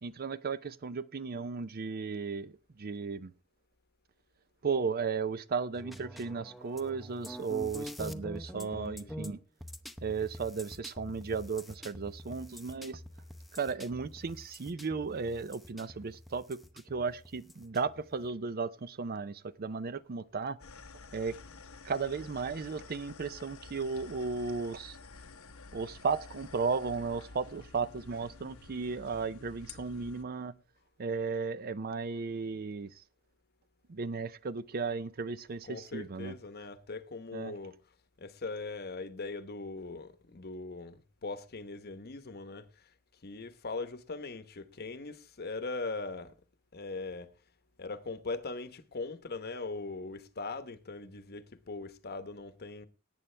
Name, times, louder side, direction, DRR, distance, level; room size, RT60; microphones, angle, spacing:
voice 1, 0.0-3.3 4.6-9.4 10.0-13.0 13.5-20.6 21.1-21.4 21.8-25.0 25.7-30.5 31.0-33.0 33.9-36.3 37.3-37.6, right 5 dB, 45° right, 0.5 m, -35 dB
sound 1, 5.8-18.3, equal, ahead, 0.7 m, -46 dB
voice 2, 8.5-9.1 35.6-37.8 38.2-42.9 43.2-46.3 46.7-47.3 47.8-52.9, left 3 dB, 50° left, 1.0 m, -40 dB
sound 2, 20.6-30.2, left 4 dB, 80° left, 0.9 m, -50 dB
18.0 x 8.9 x 3.3 m
head